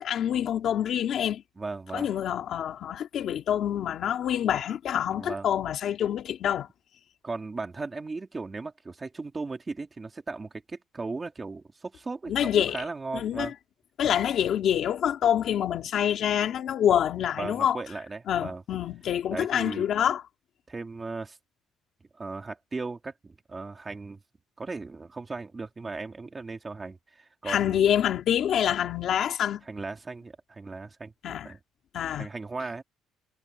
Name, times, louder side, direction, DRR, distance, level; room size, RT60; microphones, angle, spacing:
voice 1, 0.0-1.4 1.9-6.7 12.3-12.8 13.1-13.5 14.0-17.8 18.3-20.2 27.4-29.6 31.2-31.5 31.9-32.3, left 10 dB, 45° left, 2.5 m, -26 dB
voice 2, 1.6-2.1 5.1-5.5 7.2-13.5 17.4-18.6 19.3-19.9 20.7-21.4 22.1-24.2 24.6-27.8 29.7-31.6 32.1-32.8, right 3 dB, 15° right, 2.6 m, -37 dB
cardioid pair, 175°, 0 cm